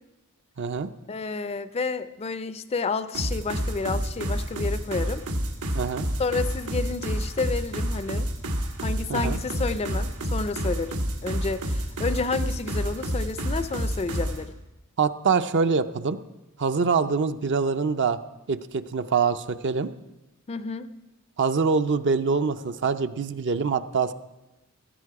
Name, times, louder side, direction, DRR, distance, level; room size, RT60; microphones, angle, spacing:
voice 1, 0.6-0.9 5.7-6.1 9.1-9.4 15.0-16.2 16.6-18.2 18.5-19.9 21.4-24.1, right 5 dB, 55° right, 10 dB, 0.5 m, -24 dB
voice 2, 1.1-5.2 6.2-8.3 8.8-14.5 20.5-20.9, left 4 dB, 30° left, 13 dB, 0.4 m, -30 dB
sound 1, 3.1-14.4, equal, 85° right, 1.8 m, -28 dB
16.5 x 13.0 x 4.7 m, 1.0 s
head